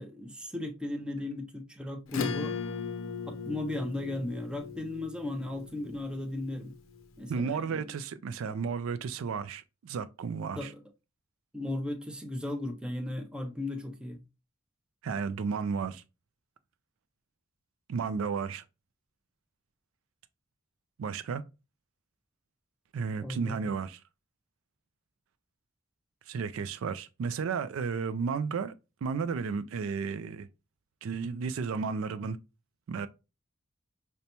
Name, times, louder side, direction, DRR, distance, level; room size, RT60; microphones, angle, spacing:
voice 1, 0.0-2.6 3.2-6.7 7.2-7.9 10.6-10.8 11.5-14.2 23.2-23.7, left 1 dB, 5° right, 0.5 m, -36 dB
Acoustic guitar / Strum, 2.1-7.0, left 5 dB, 70° left, 0.5 m, -38 dB
voice 2, 7.3-10.7 15.0-16.0 17.9-18.6 21.0-21.4 22.9-24.0 26.3-28.7 29.0-30.5 31.0-32.4 32.9-33.1, right 5 dB, 70° right, 0.3 m, -33 dB
5.2 x 2.2 x 2.8 m
head